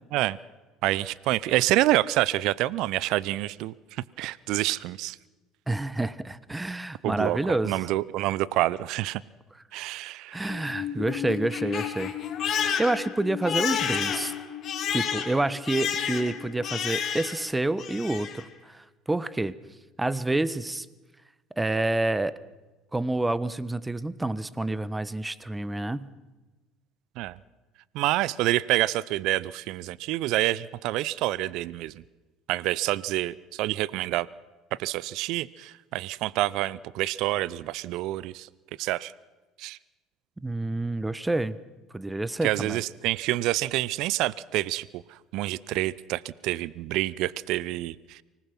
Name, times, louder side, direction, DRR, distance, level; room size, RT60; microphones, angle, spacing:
voice 1, 0.8-5.2 7.0-9.2 9.7-10.6 27.2-27.4 27.9-32.0 32.5-34.3 34.8-38.5 38.8-39.1 39.6-39.8 42.4-48.2, right 16 dB, 65° right, 21 dB, 0.6 m, -27 dB
voice 2, 5.7-7.8 10.3-12.1 12.4-14.3 14.9-19.5 20.0-20.9 21.6-22.4 22.9-26.1 40.4-41.6 41.9-42.8, right 2 dB, 10° right, 16 dB, 1.1 m, -28 dB
Crying sobbing, 10.5-17.5 17.8-18.4, left 8 dB, 50° left, 3.3 m, -31 dB
25.0 x 19.0 x 6.1 m, 1.2 s
hypercardioid pair, 65°, 0 cm